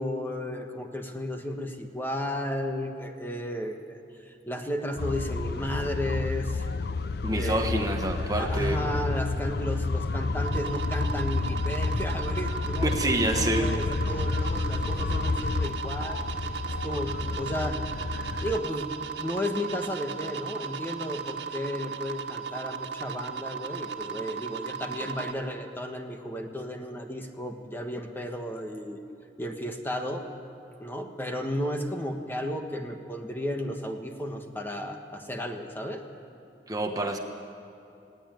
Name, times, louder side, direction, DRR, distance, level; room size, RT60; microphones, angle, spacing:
voice 1, 0.0-4.0 4.3-6.7 7.3-16.2 16.8-17.8 18.4-18.9 19.2-29.0 29.4-30.3 30.8-36.0, equal, 10° left, 4 dB, 1.4 m, -33 dB
sound 1, 5.0-18.6, left 3 dB, 60° left, 0.6 m, -30 dB
voice 2, 7.2-8.9 12.8-13.7 36.7-37.2, right 1 dB, 20° right, 4 dB, 1.2 m, -27 dB
sound 2, 10.4-25.3, right 6 dB, 90° right, 1.6 m, -36 dB
20.0 x 17.0 x 9.2 m, 2.8 s
head